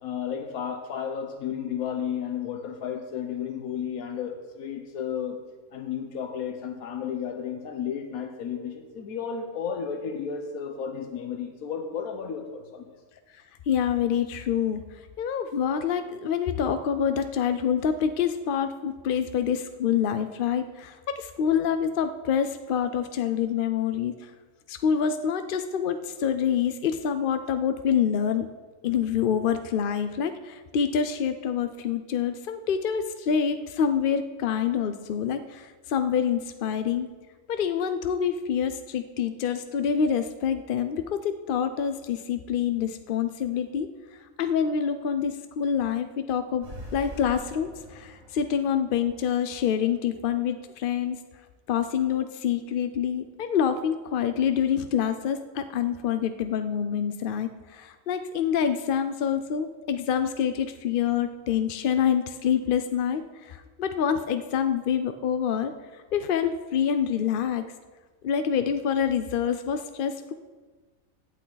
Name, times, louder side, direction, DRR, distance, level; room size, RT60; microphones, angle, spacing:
voice 1, 0.0-5.4 5.7-12.9, left 7 dB, 90° left, 5 dB, 1.3 m, -33 dB
voice 2, 13.7-14.8 15.2-24.3 24.7-28.5 28.8-37.1 37.5-43.9 44.4-51.2 51.7-65.7 66.1-67.6 68.2-70.3, left 8 dB, 60° left, 9 dB, 0.5 m, -26 dB
sound 1, 46.6-50.0, equal, 75° right, 4.9 m, -44 dB
17.0 x 8.5 x 4.0 m, 1.3 s
omnidirectional pair, 1.5 m